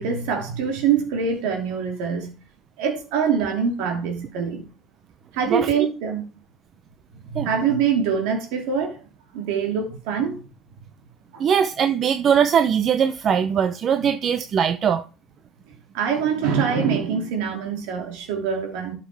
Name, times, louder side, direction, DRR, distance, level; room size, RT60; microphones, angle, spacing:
voice 1, 0.0-2.3 2.8-4.6 5.3-6.2 7.3-9.0 9.3-10.4 11.3-11.4 15.9-18.9, right 6 dB, 75° right, 2.8 m, -24 dB
voice 2, 11.4-15.0, right 8 dB, 50° right, 0.7 m, -21 dB
12.0 x 6.0 x 3.5 m
hypercardioid pair, 75°, 0 cm